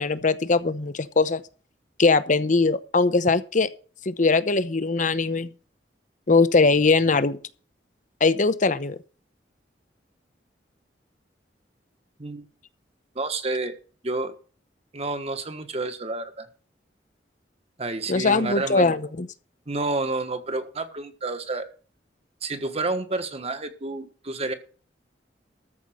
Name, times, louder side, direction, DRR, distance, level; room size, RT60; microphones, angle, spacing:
voice 1, 0.0-1.4 2.0-3.7 4.1-5.5 6.3-7.4 8.2-9.0 18.1-19.3, left 3 dB, 45° left, 0.8 m, -21 dB
voice 2, 13.1-13.8 14.0-14.3 14.9-16.5 17.8-18.9 19.7-21.7 22.4-24.5, right 2 dB, 35° right, 1.4 m, -29 dB
13.5 x 5.5 x 7.9 m
head